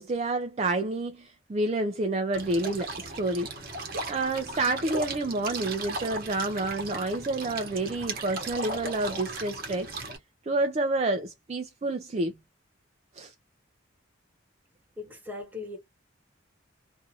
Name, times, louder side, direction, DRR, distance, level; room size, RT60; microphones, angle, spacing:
voice 1, 0.0-3.5 4.1-9.9 10.4-12.4 13.1-13.3, right 2 dB, 30° right, 0.3 m, -29 dB
sound 1, 2.3-10.2, right 2 dB, 50° right, 0.9 m, -37 dB
voice 2, 15.0-15.8, left 3 dB, 10° right, 0.9 m, -38 dB
2.6 x 2.4 x 2.7 m
head